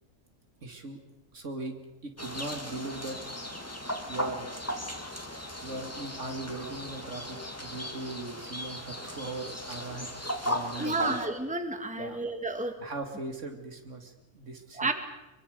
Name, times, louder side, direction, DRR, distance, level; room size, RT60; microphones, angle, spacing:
voice 1, 0.6-1.0 1.3-1.7 2.0-3.2 4.1-4.8 5.6-11.2 12.0-12.2 12.8-14.9, right 2 dB, 65° right, 5 dB, 2.8 m, -39 dB
sound 1, 2.2-11.3, equal, 10° left, 2.0 m, -37 dB
voice 2, 10.8-12.7 14.8-14.9, right 2 dB, 5° right, 7 dB, 1.6 m, -31 dB
23.5 x 23.0 x 6.7 m, 1.0 s
omnidirectional pair, 1.4 m